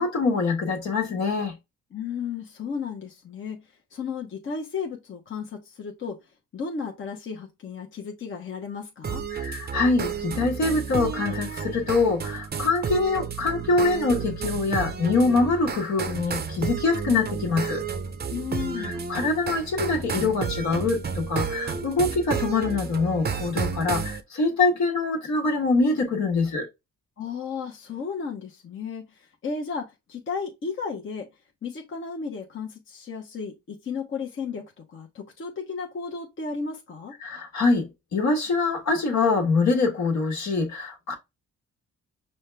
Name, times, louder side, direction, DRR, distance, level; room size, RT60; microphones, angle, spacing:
voice 1, 0.0-1.6 9.3-17.8 18.8-26.7 37.2-41.1, left 3 dB, 65° left, 1.5 m, -24 dB
voice 2, 1.9-9.2 18.3-19.1 27.2-31.3 31.6-37.1, left 5 dB, 40° left, 0.9 m, -34 dB
sound 1, 9.0-24.2, right 6 dB, 35° right, 0.6 m, -31 dB
5.3 x 2.1 x 3.4 m
cardioid pair, 90°, 30 cm